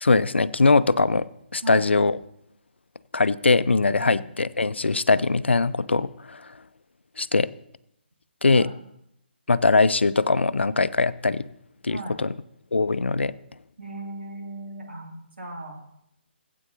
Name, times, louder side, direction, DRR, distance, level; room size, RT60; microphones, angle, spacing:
voice 1, 0.0-1.3 1.5-2.2 3.1-6.5 7.2-7.5 8.4-8.7 9.5-11.5 11.8-12.3 12.7-13.3, left 3 dB, 80° left, 17 dB, 0.4 m, -21 dB
voice 2, 13.8-15.8, right 2 dB, 70° right, 0 dB, 2.6 m, -37 dB
16.5 x 8.4 x 2.8 m, 0.78 s
figure-of-eight pair, 140°, 6 cm